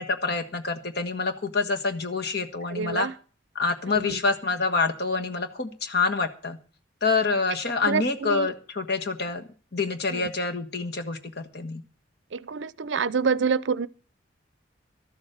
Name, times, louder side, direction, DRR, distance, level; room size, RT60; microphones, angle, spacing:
voice 1, 0.0-3.1 3.5-6.6 7.0-11.8, left 4 dB, 55° left, 1.5 m, -27 dB
voice 2, 2.7-3.1 3.9-4.2 7.8-8.5 10.1-10.3 12.3-13.9, right 5 dB, 70° right, 0.6 m, -27 dB
13.0 x 7.3 x 7.9 m
head